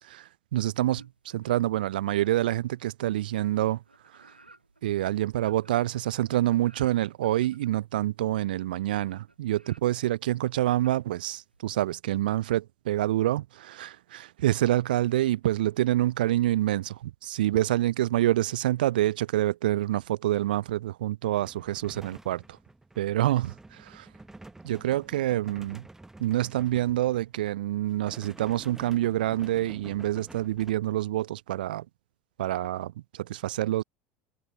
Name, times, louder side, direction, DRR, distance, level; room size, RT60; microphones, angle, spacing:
voice 1, 0.1-3.8 4.8-22.4 23.0-24.1 24.6-25.8 26.2-31.8 32.4-33.8, right 14 dB, 65° right, 0.6 m, -27 dB
sound 1, 0.9-1.7 2.1-11.9, right 2 dB, 85° right, 1.9 m, -57 dB
sound 2, 21.4-27.5 27.9-30.7, right 2 dB, 10° right, 1.1 m, -49 dB
figure-of-eight pair, 70°, 5 cm